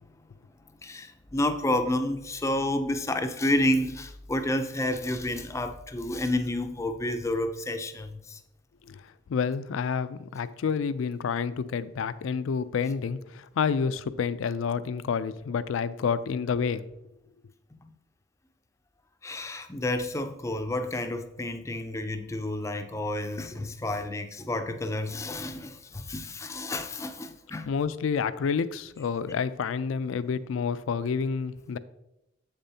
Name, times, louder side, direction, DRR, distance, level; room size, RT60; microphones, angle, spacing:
voice 1, 0.8-8.4 17.8-17.9 19.2-27.7, left 1 dB, 15° left, 0.4 m, -30 dB
voice 2, 9.3-16.8 27.7-31.8, left 6 dB, 80° left, 0.4 m, -29 dB
7.6 x 6.8 x 2.8 m
head